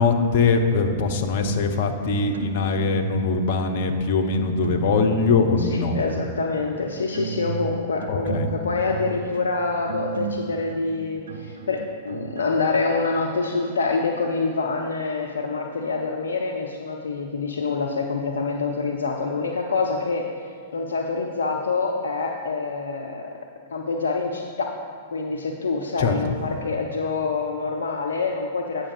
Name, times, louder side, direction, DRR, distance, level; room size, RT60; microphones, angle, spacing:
voice 1, 0.0-6.0 8.1-8.5 26.0-26.2, left 4 dB, 50° left, 5 dB, 0.9 m, -22 dB
sound 1, 1.7-3.3 3.5-5.3 5.8-6.3 6.8-12.4, right 6 dB, 70° right, 0.7 m, -34 dB
voice 2, 5.6-20.4 20.7-23.3 23.7-24.8 25.1-28.9, left 4 dB, 75° left, 2 dB, 0.6 m, -26 dB
8.7 x 6.2 x 4.9 m, 2.3 s
figure-of-eight pair, 100°, 0 cm